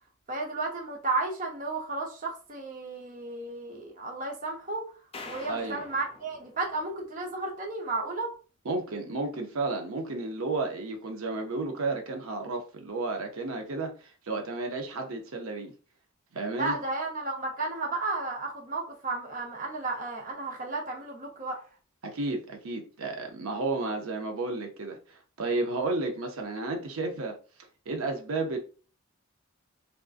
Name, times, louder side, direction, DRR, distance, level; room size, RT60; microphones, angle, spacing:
voice 1, 0.3-4.9 5.2-8.3 16.5-21.6, right 3 dB, 40° right, 0.7 m, -33 dB
sound 1, 5.1-7.5, left 3 dB, 25° left, 0.5 m, -46 dB
voice 2, 5.5-5.8 8.7-15.7 16.3-16.8 22.0-27.3 27.9-28.6, right 3 dB, 80° right, 0.6 m, -32 dB
3.5 x 2.5 x 2.4 m
head